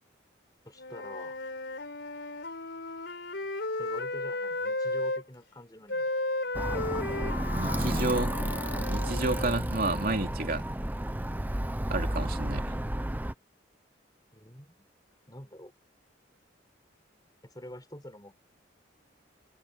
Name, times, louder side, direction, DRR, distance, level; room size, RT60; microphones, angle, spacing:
voice 1, 0.7-1.4 3.8-6.1 14.3-14.9 15.3-15.7 17.4-18.3, left 1 dB, 20° left, 5.7 m, -47 dB
Wind instrument woodwind instrument, 0.8-5.2 5.9-9.6, left 2 dB, 60° left, 4.5 m, -34 dB
Alarm, 6.5-13.3, right 1 dB, 10° right, 0.7 m, -31 dB
voice 2, 7.5-8.3 8.9-10.7 11.9-12.7, right 2 dB, 50° right, 3.3 m, -31 dB
head